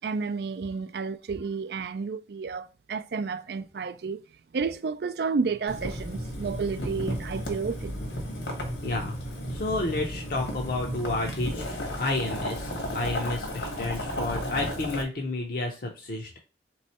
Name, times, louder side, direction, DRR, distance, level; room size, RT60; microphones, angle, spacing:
voice 1, 0.0-4.2 4.5-8.0, right 4 dB, 60° right, 0.4 m, -31 dB
Boiling, 5.7-15.0, equal, 75° left, 1.4 m, -33 dB
voice 2, 8.8-9.1 9.5-16.4, left 2 dB, 50° left, 0.6 m, -31 dB
3.5 x 3.1 x 4.1 m
head